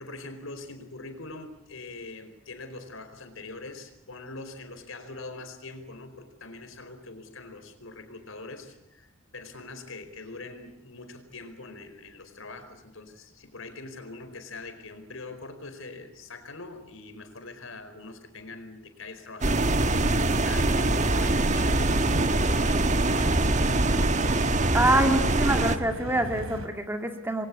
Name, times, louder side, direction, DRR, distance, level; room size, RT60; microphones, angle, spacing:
voice 1, 0.0-24.2, left 3 dB, 70° left, 8 dB, 4.6 m, -43 dB
sound 1, 19.4-25.8, right 2 dB, 35° right, 1.4 m, -23 dB
sound 2, 20.6-26.7, right 1 dB, 80° right, 3.3 m, -37 dB
voice 2, 24.7-27.5, right 1 dB, 10° right, 6 dB, 2.4 m, -25 dB
29.0 x 23.0 x 8.5 m, 0.82 s
head